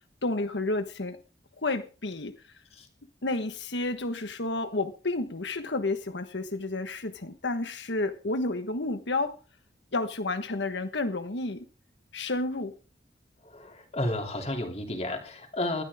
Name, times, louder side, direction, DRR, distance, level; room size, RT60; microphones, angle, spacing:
voice 1, 0.2-1.2 1.6-2.3 3.2-9.3 9.9-11.7 12.1-12.7, left 2 dB, 85° left, 1.3 m, -30 dB
voice 2, 13.4-15.8, left 1 dB, 35° left, 2.9 m, -32 dB
20.5 x 12.0 x 3.6 m
head